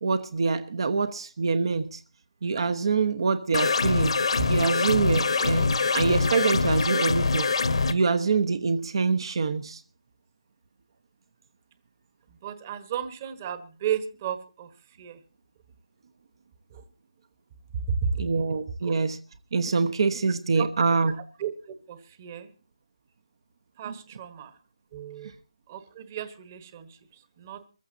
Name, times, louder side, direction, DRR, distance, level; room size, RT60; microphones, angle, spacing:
voice 1, 0.0-2.0 2.4-4.1 4.5-7.5 7.9-9.8 18.2-19.2 19.5-21.1 23.9-24.0, right 4 dB, 50° right, 1.0 m, -25 dB
sound 1, 3.5-7.9, left 4 dB, 65° left, 1.4 m, -24 dB
voice 2, 12.4-15.2 16.7-16.9 18.0-18.1 18.8-18.9 20.6-21.0 21.4-22.5 23.8-24.5 24.9-25.3 25.7-27.6, right 9 dB, 25° right, 1.3 m, -35 dB
24.0 x 15.0 x 2.7 m
hypercardioid pair, 165°, 3 cm